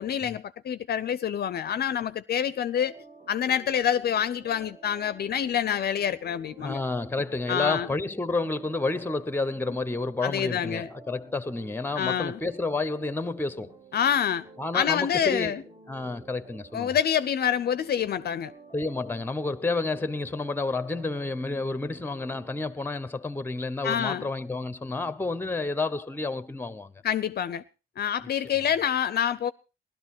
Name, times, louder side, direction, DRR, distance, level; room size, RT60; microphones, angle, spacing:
voice 1, 0.0-2.9 3.3-6.8 7.5-7.9 10.2-10.9 12.0-12.4 13.9-14.5 14.7-15.6 16.7-18.5 23.8-24.3 27.0-27.6 28.0-29.5, left 9 dB, 55° left, 0.6 m, -27 dB
sound 1, 2.8-22.7, right 3 dB, 25° right, 1.6 m, -51 dB
voice 2, 6.6-13.8 14.6-16.9 18.7-26.9, left 3 dB, 10° left, 0.9 m, -30 dB
16.5 x 12.5 x 4.3 m
cardioid pair, 90°, 20 cm